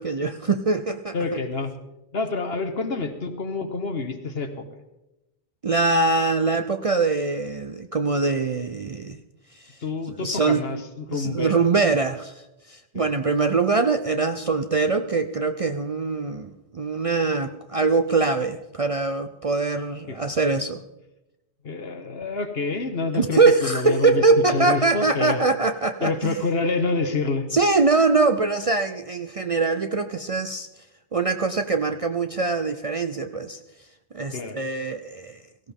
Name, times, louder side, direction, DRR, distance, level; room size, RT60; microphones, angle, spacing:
voice 1, 0.0-1.4 5.6-9.2 9.5-9.8 10.2-10.6 11.1-20.8 23.1-26.4 27.5-30.7 31.1-33.6 34.1-35.4, right 3 dB, 40° right, 8 dB, 0.5 m, -23 dB
voice 2, 1.1-1.7 2.1-4.8 9.8-11.7 12.9-13.1 20.1-20.2 21.6-25.4 26.0-27.5 34.3-34.6, left 3 dB, 65° left, 7 dB, 1.6 m, -27 dB
17.5 x 15.5 x 3.6 m, 0.93 s
omnidirectional pair, 1.1 m